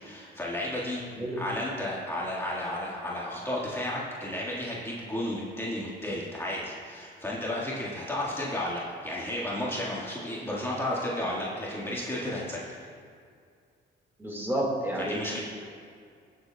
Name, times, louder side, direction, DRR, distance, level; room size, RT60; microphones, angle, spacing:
voice 1, 0.0-1.0 1.3-12.8 15.1-15.4, left 1 dB, 10° left, -6 dB, 1.7 m, -33 dB
voice 2, 1.1-1.4 14.2-15.2, right 1 dB, 10° right, -3 dB, 2.0 m, -30 dB
17.0 x 7.5 x 2.3 m, 2.3 s
cardioid pair, 90°, 20 cm